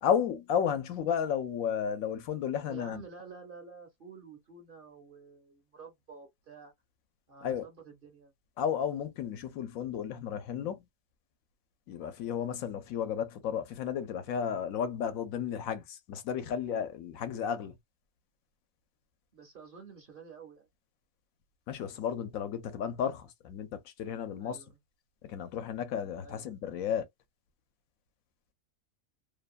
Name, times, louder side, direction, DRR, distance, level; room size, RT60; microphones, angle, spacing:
voice 1, 0.0-3.0 7.4-7.6 8.6-10.8 11.9-17.7 21.7-24.6 25.3-27.0, left 8 dB, 75° left, 1.0 m, -33 dB
voice 2, 2.6-6.7 7.3-8.3 19.3-20.7 24.4-24.8 26.2-26.7, right 5 dB, 50° right, 0.7 m, -50 dB
2.7 x 2.1 x 2.3 m
omnidirectional pair, 1.5 m